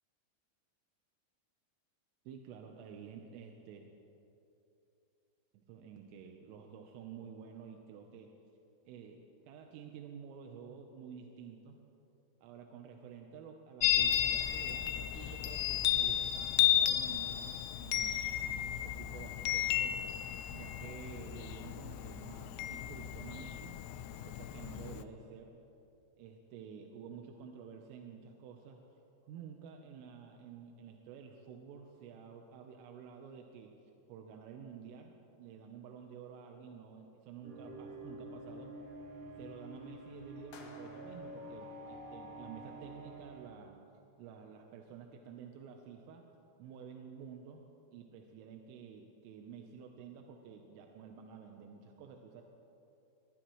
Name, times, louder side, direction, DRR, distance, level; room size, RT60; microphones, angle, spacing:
voice 1, 2.3-3.9 5.5-8.4 8.9-11.8 12.4-20.0 20.5-23.8 24.2-25.6 26.2-28.8 29.2-33.8 34.1-38.8 39.4-43.8 44.2-46.3 46.6-47.6 47.9-52.4, right 7 dB, 90° right, 3 dB, 3.5 m, -51 dB
Chime, 13.8-25.0, left 12 dB, 85° left, 2.6 m, -33 dB
sound 1, 37.4-43.5, right 1 dB, 45° right, 5.3 m, -48 dB
sound 2, 40.5-42.8, left 3 dB, 65° left, 3.1 m, -58 dB
23.5 x 20.0 x 3.1 m, 2.9 s
omnidirectional pair, 5.7 m